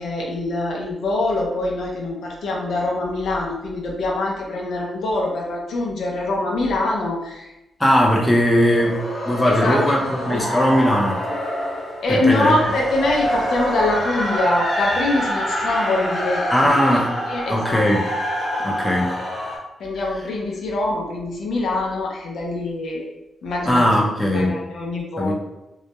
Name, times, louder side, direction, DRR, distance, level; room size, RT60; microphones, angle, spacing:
voice 1, 0.0-7.5 9.5-10.4 12.0-17.9 19.8-23.1 23.4-24.1 24.3-25.3, left 2 dB, 75° left, -1 dB, 0.5 m, -24 dB
voice 2, 7.8-11.2 12.1-12.6 16.5-17.1 17.5-18.0 18.6-19.1 23.7-24.5 25.2-25.3, equal, 10° left, -2 dB, 0.5 m, -19 dB
sound 1, 8.5-19.6, equal, 35° left, 0.9 m, -26 dB
2.2 x 2.1 x 2.8 m, 0.93 s
cardioid pair, 85°, 0 cm